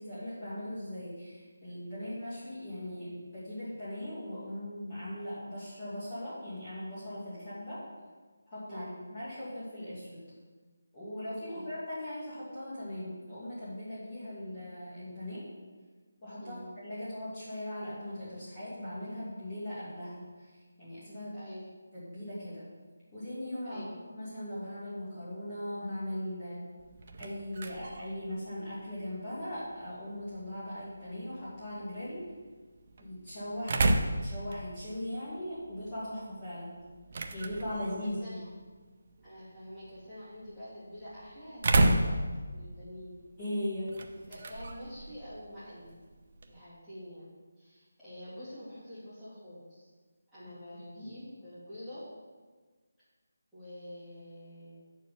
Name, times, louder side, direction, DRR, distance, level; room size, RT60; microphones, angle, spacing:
voice 1, 0.0-7.8 8.5-10.3 10.9-15.4 16.2-21.4 21.9-22.7 23.1-26.6 27.2-32.3 33.0-33.9 34.2-36.8 37.3-38.4 43.4-43.9 50.7-51.1, left 1 dB, 20° left, -11 dB, 2.1 m, -39 dB
voice 2, 8.7-9.0 11.5-11.8 16.4-16.7 21.3-21.7 23.6-24.0 33.8-34.0 38.0-38.4 39.2-42.2 42.5-43.2 44.2-46.0 46.5-47.3 47.6-49.9 50.3-52.1 53.5-54.7, equal, ahead, -17 dB, 2.4 m, -47 dB
sound 1, 26.8-46.6, right 2 dB, 35° right, 0.5 m, -35 dB
7.9 x 4.6 x 7.0 m, 1.4 s
figure-of-eight pair, 175°, 0 cm